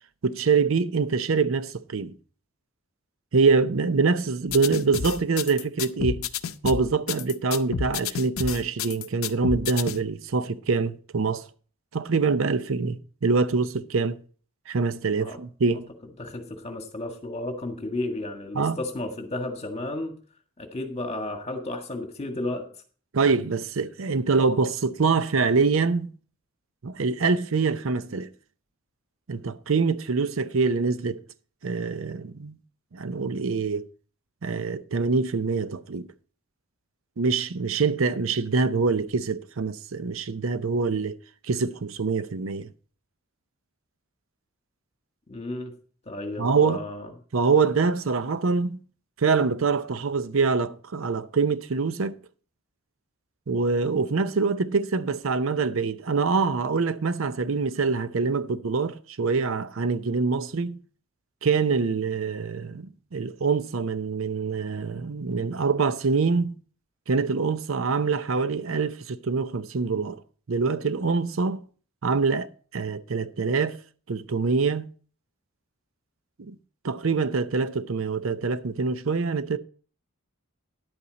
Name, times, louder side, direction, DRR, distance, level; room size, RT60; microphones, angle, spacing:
voice 1, 0.2-2.1 3.3-6.3 6.6-11.5 11.9-14.2 14.7-15.9 18.6-18.8 23.1-26.1 26.8-28.3 29.3-31.2 31.6-32.6 32.9-33.8 34.4-36.1 37.2-41.2 41.4-42.7 46.4-46.8 47.3-48.8 49.2-52.2 53.5-60.8 61.4-66.6 67.1-70.2 70.5-71.6 72.0-73.8 74.1-74.9 76.4-76.5 76.8-79.6, right 4 dB, 70° right, 0.6 m, -25 dB
sound 1, 4.5-10.0, left 6 dB, 80° left, 0.6 m, -30 dB
voice 2, 16.2-20.1 20.6-22.7 45.3-45.7 46.1-47.1, left 2 dB, 30° left, 1.7 m, -33 dB
11.0 x 8.5 x 4.0 m
head